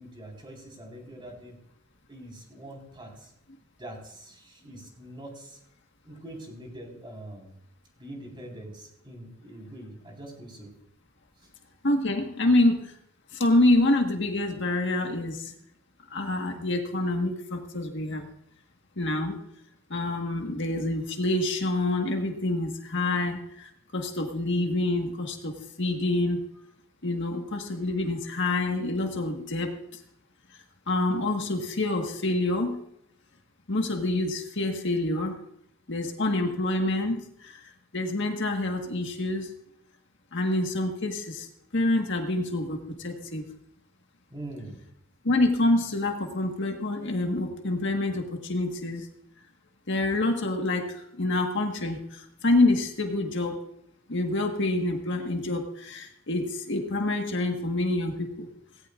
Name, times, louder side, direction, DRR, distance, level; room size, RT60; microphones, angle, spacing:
voice 1, 0.0-1.6 2.1-3.3 3.8-5.6 6.0-7.5 8.0-10.7 44.3-44.8, right 1 dB, 25° right, 0 dB, 4.5 m, -43 dB
voice 2, 11.8-13.0 13.3-15.5 16.1-18.3 19.0-19.4 19.9-26.4 27.0-30.0 30.9-32.8 33.7-35.4 35.9-39.5 40.3-41.5 41.7-43.4 45.2-49.1 49.9-53.6 54.1-58.5, left 2 dB, 60° left, 3 dB, 1.6 m, -27 dB
18.0 x 17.0 x 2.5 m, 0.72 s
head